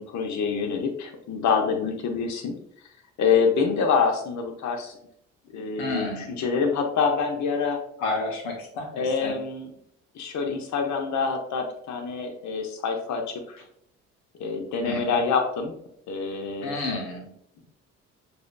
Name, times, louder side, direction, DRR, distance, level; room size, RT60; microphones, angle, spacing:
voice 1, 0.0-2.6 3.2-4.9 5.5-7.8 8.9-9.7 10.1-13.6 14.4-15.7 16.1-16.7, left 5 dB, 50° left, 4 dB, 0.9 m, -26 dB
voice 2, 5.5-6.5 8.0-9.4 14.8-15.2 16.6-17.3, left 3 dB, 80° left, 1 dB, 0.9 m, -31 dB
6.6 x 2.6 x 2.2 m, 0.72 s
hypercardioid pair, 55°, 36 cm